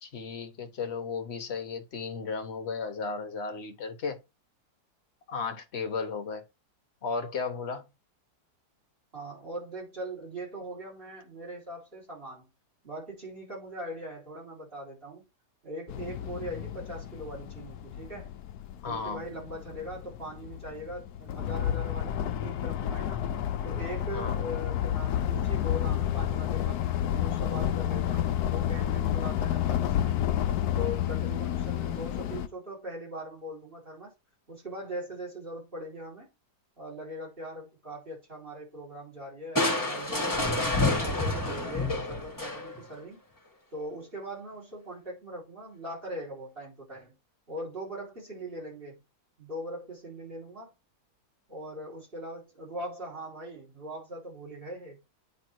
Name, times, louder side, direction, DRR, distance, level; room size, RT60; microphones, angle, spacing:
voice 1, 0.0-4.2 5.3-6.4 7.0-7.8 18.8-19.3 24.1-24.4, left 5 dB, 45° left, 1.1 m, -34 dB
voice 2, 9.1-12.5 12.8-15.3 15.6-18.3 18.9-23.2 23.6-26.8 27.1-30.3 30.8-34.1 34.5-36.3 36.8-40.7 41.0-43.2 43.7-47.2 47.5-49.0 49.4-50.7 51.5-55.0, equal, 35° right, 3.9 m, -40 dB
sound 1, 15.9-32.5, left 11 dB, 75° left, 1.1 m, -30 dB
Crushing, 39.6-42.9, left 2 dB, 10° left, 1.4 m, -28 dB
9.1 x 3.5 x 4.5 m
omnidirectional pair, 1.7 m